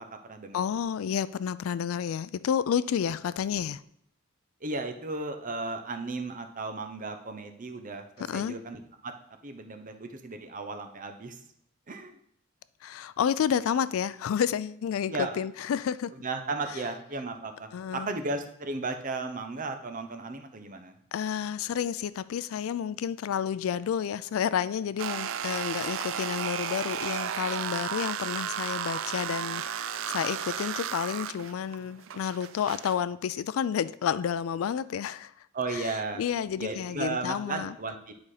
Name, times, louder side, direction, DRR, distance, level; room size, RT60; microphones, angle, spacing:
voice 1, 0.0-0.6 4.6-8.0 8.3-9.1 9.4-11.4 11.9-12.2 15.1-15.4 16.2-20.9 35.5-36.2 36.6-38.1, right 3 dB, 40° right, 0.8 m, -35 dB
voice 2, 0.5-3.8 8.3-8.5 12.8-16.1 17.7-18.1 21.1-35.3 35.7-35.9 36.2-37.8, left 8 dB, 75° left, 0.3 m, -30 dB
sound 1, 25.0-33.0, right 8 dB, 65° right, 0.4 m, -34 dB
9.7 x 4.1 x 4.9 m
head